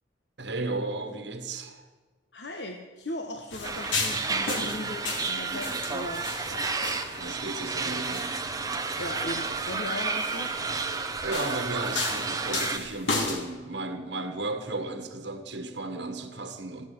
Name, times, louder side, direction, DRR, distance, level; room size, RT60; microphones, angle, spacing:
voice 1, 0.4-1.8 4.4-4.9 7.1-8.3 10.8-16.9, right 2 dB, 70° right, 1.4 m, -35 dB
voice 2, 2.3-6.7 7.9-8.0 9.0-10.5, left 1 dB, 65° left, 1.1 m, -38 dB
sound 1, 3.5-13.4, left 3 dB, 85° left, 2.7 m, -35 dB
sound 2, 3.6-12.8, right 4 dB, 20° right, 0.8 m, -31 dB
14.5 x 7.6 x 9.2 m
head